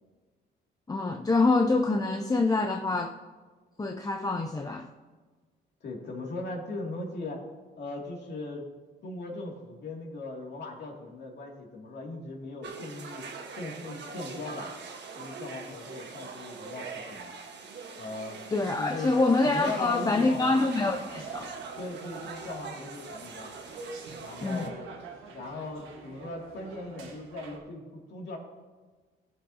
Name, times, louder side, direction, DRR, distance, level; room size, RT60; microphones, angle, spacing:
voice 1, 0.9-3.1 3.8-4.9 18.5-21.5 24.4-24.7, left 3 dB, 20° left, 0.6 m, -26 dB
voice 2, 5.8-7.4 7.8-8.7 9.0-13.3 13.5-14.7 15.2-17.3 18.0-18.4 18.8-19.1 19.4-20.6 21.8-23.5 24.2-24.7 25.3-28.4, left 2 dB, 60° left, 2.5 m, -38 dB
sound 1, 12.6-24.7, right 5 dB, 60° right, 1.4 m, -43 dB
sound 2, 20.6-27.6, right 3 dB, 85° right, 1.6 m, -45 dB
15.5 x 7.5 x 2.8 m
cardioid pair, 90°, 20 cm